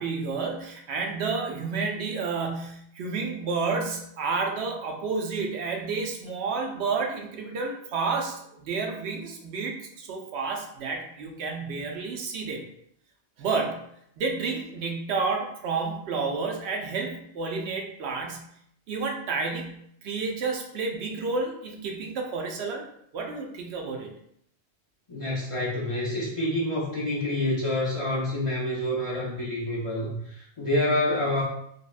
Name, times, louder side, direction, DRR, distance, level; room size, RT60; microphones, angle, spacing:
voice 1, 0.0-8.4 8.6-12.6 13.4-13.8 14.2-18.5 18.9-22.9 23.1-24.1, right 4 dB, 75° right, 1 dB, 0.8 m, -30 dB
voice 2, 25.1-31.4, left 1 dB, 40° left, -7 dB, 0.5 m, -27 dB
3.3 x 2.1 x 2.4 m, 0.72 s
omnidirectional pair, 1.1 m